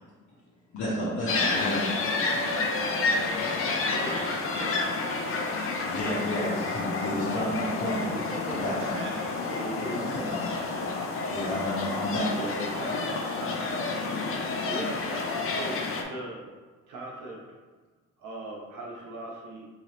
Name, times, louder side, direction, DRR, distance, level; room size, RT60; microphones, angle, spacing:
voice 1, 0.7-2.7 5.8-8.0 8.5-9.0 9.9-10.4 11.3-12.3, left 1 dB, 70° left, -8 dB, 1.0 m, -31 dB
sound 1, 1.3-16.0, left 3 dB, 45° left, 0.6 m, -30 dB
voice 2, 3.4-5.4 8.8-9.6 10.6-11.1 13.6-13.9, right 2 dB, 40° right, -1 dB, 0.9 m, -41 dB
voice 3, 4.5-5.0 8.3-9.2 9.5-10.7 11.2-11.4 12.4-13.8 14.3-16.4 16.9-17.4 18.2-19.7, right 1 dB, 90° right, -2 dB, 1.0 m, -39 dB
3.8 x 2.8 x 3.2 m, 1.3 s
cardioid pair, 90°, 30 cm